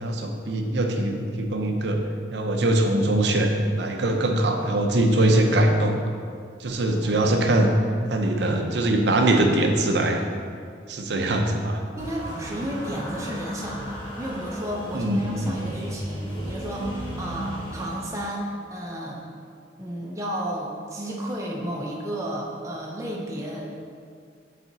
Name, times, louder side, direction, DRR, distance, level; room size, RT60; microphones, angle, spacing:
voice 1, 0.0-2.0 2.3-6.0 6.6-7.7 8.1-10.2 10.9-11.8 14.9-15.9, right 1 dB, 70° right, 3 dB, 0.7 m, -22 dB
voice 2, 6.9-7.4 12.0-19.2 19.8-23.7, right 1 dB, 15° right, -3 dB, 0.6 m, -32 dB
sound 1, 12.0-18.0, equal, 30° left, 1.2 m, -35 dB
7.4 x 4.2 x 4.0 m, 2.2 s
head